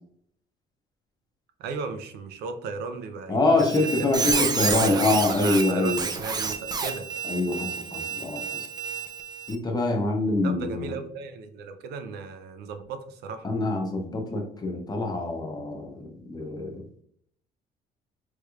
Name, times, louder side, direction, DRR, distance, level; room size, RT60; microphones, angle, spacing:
voice 1, 1.6-3.7 4.4-7.1 10.4-13.5, right 4 dB, 80° right, 7 dB, 0.5 m, -35 dB
voice 2, 3.3-6.0 7.2-8.7 9.5-10.9 13.4-16.8, left 2 dB, 25° left, 2 dB, 0.7 m, -25 dB
Squeak, 3.6-9.6, right 5 dB, 25° right, 0.4 m, -29 dB
3.2 x 3.1 x 2.4 m, 0.65 s
cardioid pair, 110°, 17 cm